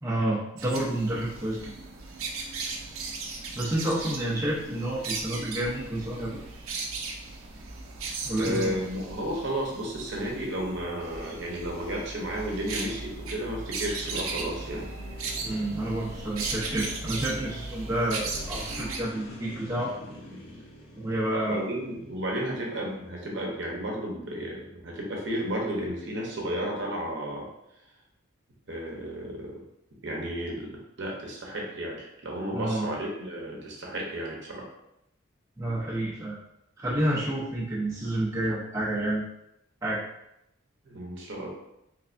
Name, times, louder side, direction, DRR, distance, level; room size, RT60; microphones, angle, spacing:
voice 1, 0.0-1.7 3.5-6.5 8.2-8.8 15.4-19.9 21.0-21.6 32.5-32.9 35.6-36.4 36.8-39.2 39.8-40.0, right 1 dB, 15° right, -7 dB, 0.6 m, -29 dB
sound 1, 0.6-19.0, right 4 dB, 85° right, 0.6 m, -37 dB
voice 2, 8.4-14.9 20.3-20.4 21.5-27.5 28.7-29.6 30.0-34.7 40.8-41.5, right 1 dB, 60° right, -1 dB, 0.8 m, -33 dB
sound 2, 12.5-23.8, left 1 dB, 70° left, 0.9 m, -48 dB
sound 3, 14.7-19.7, left 1 dB, 55° left, 0.5 m, -47 dB
3.3 x 3.3 x 2.5 m, 0.84 s
head